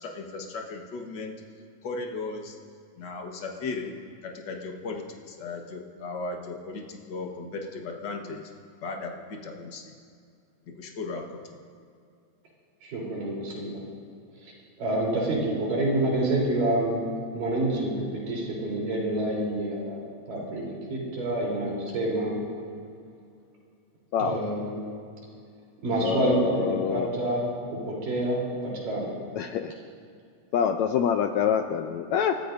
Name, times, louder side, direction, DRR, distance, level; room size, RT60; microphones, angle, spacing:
voice 1, 0.0-1.3 1.8-2.6 3.0-3.9 4.2-8.4 8.8-9.8 10.8-11.6, left 3 dB, 50° left, 1 dB, 1.4 m, -36 dB
voice 2, 12.8-13.8 14.8-16.9 17.3-20.0 20.3-22.4 24.2-24.9 25.8-27.4 27.7-28.4 28.8-29.1, right 1 dB, 85° right, -4 dB, 5.2 m, -27 dB
voice 3, 26.0-27.1 29.4-29.7 30.5-32.3, left 8 dB, 80° left, 6 dB, 1.7 m, -26 dB
30.0 x 13.5 x 2.6 m, 2.3 s
omnidirectional pair, 3.7 m